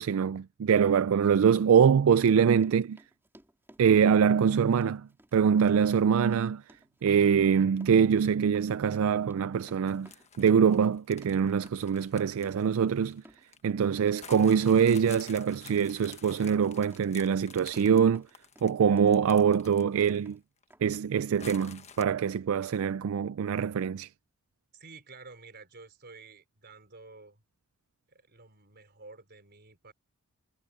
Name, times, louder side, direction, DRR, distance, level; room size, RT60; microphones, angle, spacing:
voice 1, 0.0-3.0 3.8-6.6 7.0-10.1 10.4-13.2 13.6-18.2 18.6-20.4 20.8-24.1, right 7 dB, 70° right, 0.4 m, -24 dB
Run, 1.8-19.5 19.8-20.4 20.7-20.8, right 1 dB, 10° right, 3.1 m, -58 dB
sound 1, 9.9-13.6 14.2-20.3 20.6-20.7 21.4-22.0, left 7 dB, 30° left, 1.2 m, -50 dB
voice 2, 24.7-27.4 28.1-29.9, right 3 dB, 50° right, 4.4 m, -51 dB
head